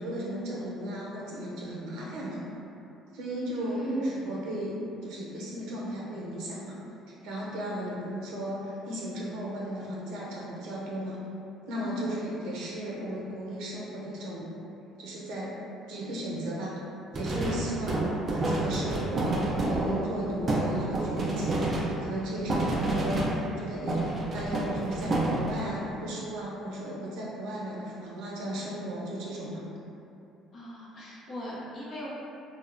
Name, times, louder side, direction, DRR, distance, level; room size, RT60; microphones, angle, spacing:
voice 1, 0.0-2.4 3.1-4.7 5.0-6.8 7.1-11.2 11.7-14.5 15.0-15.5 15.9-16.7 17.1-29.7, right 1 dB, 85° right, -5 dB, 0.6 m, -35 dB
voice 2, 3.6-3.9 11.7-12.1 30.5-32.1, left 1 dB, 40° left, -6 dB, 0.6 m, -40 dB
sound 1, 17.1-23.6 23.9-25.8, right 2 dB, 30° right, 0.3 m, -29 dB
2.7 x 2.0 x 2.5 m, 2.8 s
cardioid pair, 130°, 0 cm